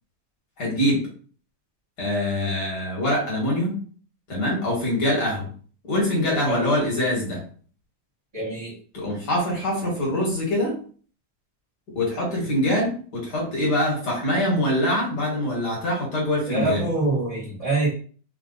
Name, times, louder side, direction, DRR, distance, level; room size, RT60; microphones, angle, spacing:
voice 1, 0.6-1.1 2.0-3.8 4.3-5.5 5.8-7.4 8.9-10.8 11.9-16.8, left 1 dB, 40° left, -3 dB, 1.9 m, -24 dB
voice 2, 8.3-8.8 16.5-17.9, right 2 dB, 35° right, -6 dB, 0.5 m, -25 dB
4.6 x 2.6 x 4.0 m, 0.42 s
omnidirectional pair, 3.4 m